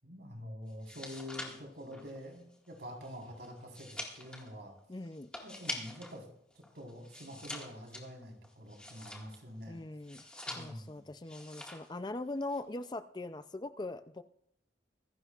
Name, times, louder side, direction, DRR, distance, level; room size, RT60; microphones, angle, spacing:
voice 1, 0.0-4.7 5.4-6.2 6.5-9.8 10.5-11.0, equal, 70° right, 0 dB, 4.2 m, -46 dB
sound 1, 0.7-6.2 6.5-9.5 10.0-10.9 11.2-11.9 12.2-12.6, left 1 dB, 5° left, 1.8 m, -45 dB
voice 2, 4.9-5.3 9.7-10.2 10.5-14.2, left 2 dB, 25° left, 11 dB, 0.4 m, -41 dB
25.5 x 11.0 x 2.4 m, 0.69 s
head